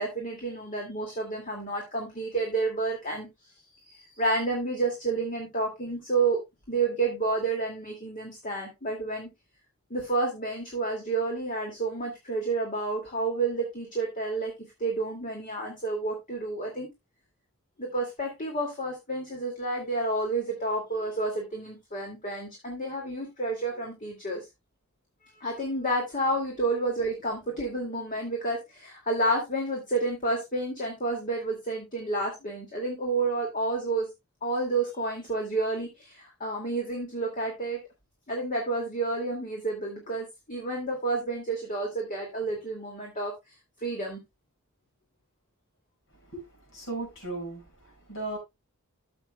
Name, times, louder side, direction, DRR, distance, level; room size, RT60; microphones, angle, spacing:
voice 1, 0.0-3.3 3.9-6.4 6.7-9.3 9.9-14.5 14.8-16.9 17.8-24.4 25.4-34.1 34.4-37.8 38.3-43.3 43.8-44.2, right 2 dB, 40° left, 2.3 m, -30 dB
voice 2, 46.7-48.4, right 2 dB, 60° left, 5.8 m, -36 dB
14.0 x 7.1 x 2.2 m
head